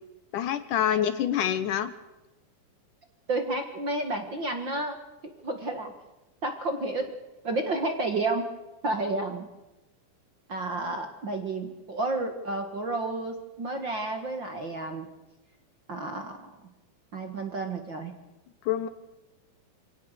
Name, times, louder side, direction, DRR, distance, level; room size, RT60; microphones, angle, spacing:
voice 1, 0.3-1.9 18.7-18.9, left 10 dB, 70° left, 12 dB, 2.3 m, -26 dB
voice 2, 3.3-5.0 5.4-5.9 6.4-7.2 7.4-8.4 8.8-9.5 10.5-15.1 15.9-16.5 17.1-18.1, right 2 dB, 40° right, 5 dB, 1.8 m, -31 dB
26.5 x 17.5 x 6.6 m, 1.0 s
omnidirectional pair, 4.1 m